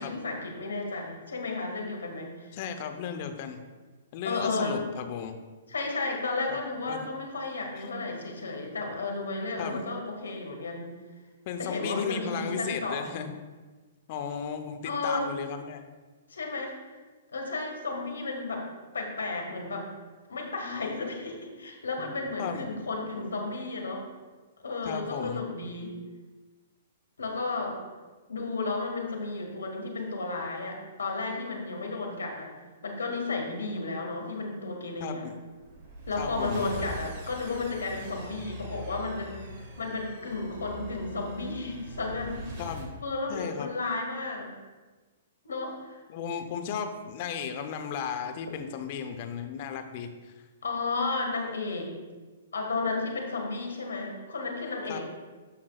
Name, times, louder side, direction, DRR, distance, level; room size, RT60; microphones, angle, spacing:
voice 1, 0.0-2.5 4.2-4.9 5.7-10.9 11.6-13.2 14.8-15.3 16.3-16.7 17.3-18.7 18.9-19.9 20.3-24.1 24.6-25.9 27.2-27.8 28.3-32.5 32.8-35.2 36.1-39.4 39.8-42.5 43.0-44.5 45.4-46.0 50.6-51.9 52.5-55.0, left 3 dB, 75° left, 1 dB, 1.7 m, -33 dB
voice 2, 2.5-3.6 4.1-5.4 6.5-6.6 6.8-7.1 9.6-9.8 11.5-13.3 14.1-15.9 22.0-22.1 22.4-22.7 24.8-25.4 35.0-35.3 36.2-36.6 42.6-42.9 43.3-43.7 46.1-50.1 54.9-55.0, left 7 dB, 45° left, 6 dB, 0.8 m, -35 dB
sound 1, 35.5-42.9, equal, 40° right, 2.2 m, -42 dB
12.5 x 5.8 x 2.4 m, 1.3 s
figure-of-eight pair, 115°, 0 cm